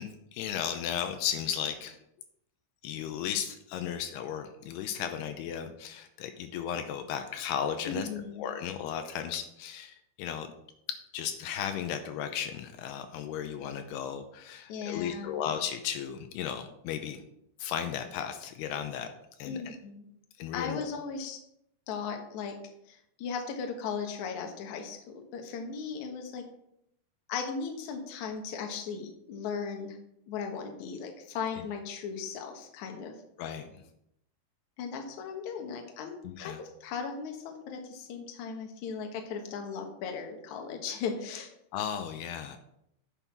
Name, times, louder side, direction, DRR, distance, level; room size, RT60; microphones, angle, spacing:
voice 1, 0.0-2.0 2.8-8.1 8.4-10.5 11.1-17.2 17.6-19.1 19.4-19.8 20.4-20.9 31.6-31.7 33.4-33.8 36.2-36.6 41.7-42.6, left 9 dB, 85° left, 7 dB, 2.7 m, -35 dB
voice 2, 7.9-8.5 14.7-15.4 19.5-20.1 20.5-21.4 21.9-22.6 22.9-25.0 25.3-26.4 27.3-30.0 30.3-33.2 34.8-41.5, left 6 dB, 60° left, 3 dB, 2.2 m, -37 dB
9.0 x 6.3 x 5.8 m, 0.77 s
omnidirectional pair, 4.8 m